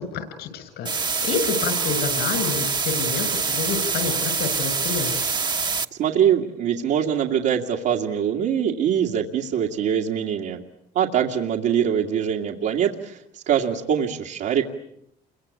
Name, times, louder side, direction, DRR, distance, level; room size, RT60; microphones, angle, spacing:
voice 1, 0.1-5.3, left 6 dB, 75° left, 10 dB, 6.5 m, -29 dB
sound 1, 0.8-5.8, right 4 dB, 25° right, 1.1 m, -25 dB
voice 2, 6.0-10.6 10.9-14.7, right 9 dB, 75° right, -2 dB, 2.2 m, -23 dB
29.0 x 24.0 x 8.4 m, 0.75 s
cardioid pair, 110°, 17 cm